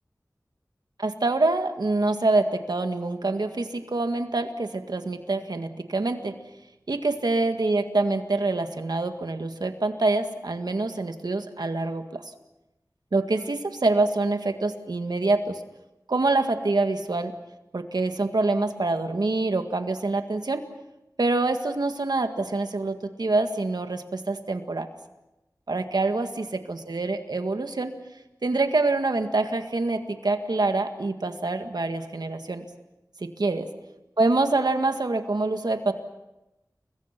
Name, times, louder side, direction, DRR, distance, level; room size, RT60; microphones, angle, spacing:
voice 1, 1.0-6.4 6.9-12.2 13.1-15.6 16.1-17.3 17.7-20.7 21.2-24.9 25.7-27.9 28.4-32.6 33.2-33.7 34.2-35.9, right 2 dB, 85° right, 7 dB, 1.9 m, -25 dB
30.0 x 22.5 x 6.0 m, 0.97 s
wide cardioid pair, 60°, 7 cm